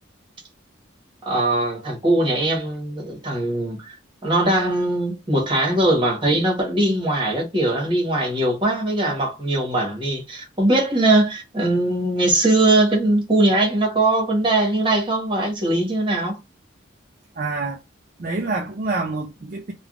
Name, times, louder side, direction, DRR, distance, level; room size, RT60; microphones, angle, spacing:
voice 1, 1.2-4.0 4.2-16.4, right 2 dB, 25° right, 1.1 m, -21 dB
voice 2, 17.4-17.8 18.2-19.7, right 3 dB, 45° right, 0.4 m, -27 dB
3.4 x 2.3 x 2.4 m
head